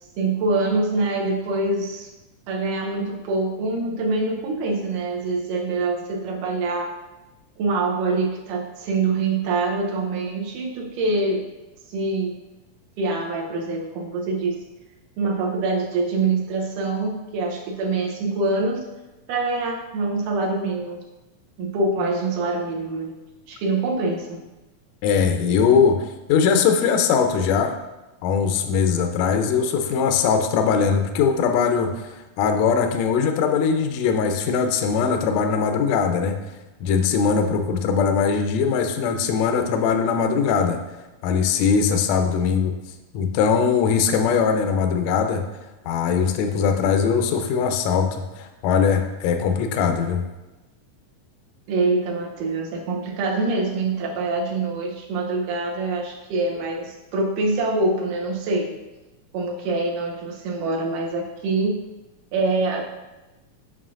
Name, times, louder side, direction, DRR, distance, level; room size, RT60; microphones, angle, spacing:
voice 1, 0.2-2.1 2.5-6.9 7.6-11.5 11.9-12.3 13.0-14.6 15.2-18.8 19.3-21.0 21.6-23.2 23.5-24.4 51.7-58.7 59.3-61.9 62.3-62.8, right 3 dB, 80° right, 0 dB, 2.2 m, -25 dB
voice 2, 25.0-26.0 26.3-27.7 28.2-36.4 36.8-40.8 41.2-42.7 43.1-45.4 45.8-50.2, left 6 dB, 85° left, 6 dB, 1.5 m, -21 dB
7.3 x 5.7 x 2.4 m, 1.1 s
omnidirectional pair, 3.8 m